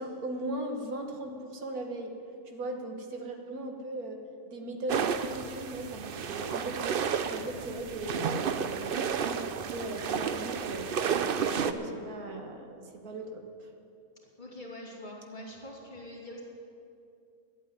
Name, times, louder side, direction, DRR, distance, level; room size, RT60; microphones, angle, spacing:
voice 1, 0.0-2.1 2.5-4.2 4.4-7.0 7.3-10.9 11.4-13.7, right 1 dB, 85° right, 3 dB, 1.9 m, -38 dB
sound 1, 4.9-11.7, right 7 dB, 60° right, 0.6 m, -31 dB
voice 2, 14.4-16.4, left 1 dB, 30° left, -3 dB, 2.6 m, -44 dB
12.0 x 8.5 x 10.0 m, 2.5 s
omnidirectional pair, 1.5 m